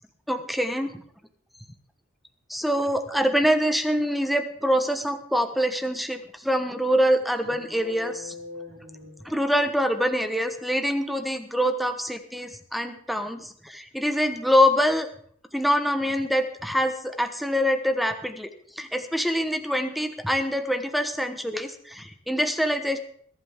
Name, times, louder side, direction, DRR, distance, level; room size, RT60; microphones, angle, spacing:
voice 1, 0.3-1.0 2.5-8.3 9.2-15.1 15.5-18.5 18.8-23.0, equal, ahead, 7 dB, 1.2 m, -25 dB
sound 1, 7.3-9.9, left 2 dB, 65° right, 4.0 m, -42 dB
21.5 x 11.5 x 3.7 m, 0.62 s
head